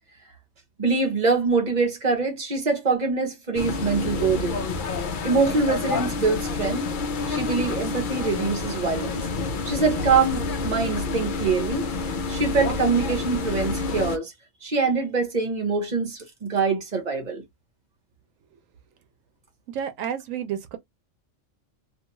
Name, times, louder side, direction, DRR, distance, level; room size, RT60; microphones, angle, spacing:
voice 1, 0.8-4.7 5.2-6.9 7.3-9.2 9.7-11.9 12.3-14.3 14.6-17.4, right 4 dB, 40° right, 0.9 m, -24 dB
sound 1, 3.5-14.2, left 4 dB, 55° left, 0.6 m, -28 dB
voice 2, 19.7-20.8, right 8 dB, 90° right, 1.0 m, -30 dB
2.6 x 2.2 x 2.9 m
omnidirectional pair, 1.3 m